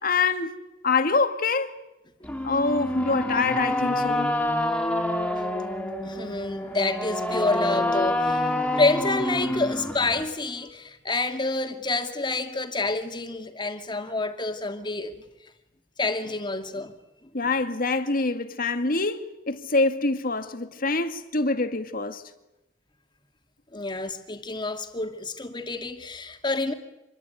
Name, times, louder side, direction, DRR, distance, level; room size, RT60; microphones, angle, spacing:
voice 1, 0.0-0.5 0.8-1.7 2.4-4.3 17.3-22.2, left 3 dB, 50° left, 2.0 m, -25 dB
sound 1, 2.2-10.2, left 1 dB, 5° left, 3.1 m, -27 dB
voice 2, 6.0-8.5 8.8-15.1 16.0-16.9 17.2-17.3 23.7-26.7, left 3 dB, 25° left, 2.5 m, -28 dB
26.5 x 22.0 x 9.4 m
head